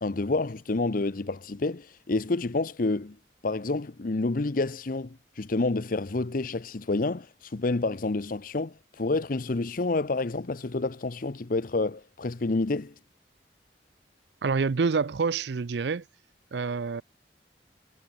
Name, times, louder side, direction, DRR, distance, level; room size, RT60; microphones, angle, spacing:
voice 1, 0.0-3.2 3.4-12.9, left 3 dB, 50° left, 0.8 m, -29 dB
voice 2, 14.4-16.0 16.5-17.0, right 4 dB, 75° right, 0.5 m, -27 dB
head